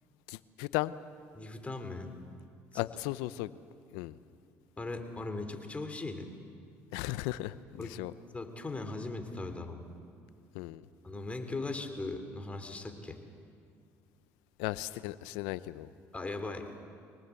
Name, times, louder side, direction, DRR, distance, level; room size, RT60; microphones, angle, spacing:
voice 1, 0.3-0.9 2.7-3.5 3.9-4.2 6.9-8.1 10.5-10.9 14.6-15.9, left 17 dB, 85° left, 16 dB, 0.7 m, -36 dB
voice 2, 1.3-2.1 4.8-6.3 7.8-7.9 8.3-9.8 11.0-13.2 16.1-16.7, left 2 dB, 20° left, 6 dB, 3.1 m, -38 dB
24.0 x 19.0 x 8.3 m, 2.4 s
supercardioid pair, 80°, 7 cm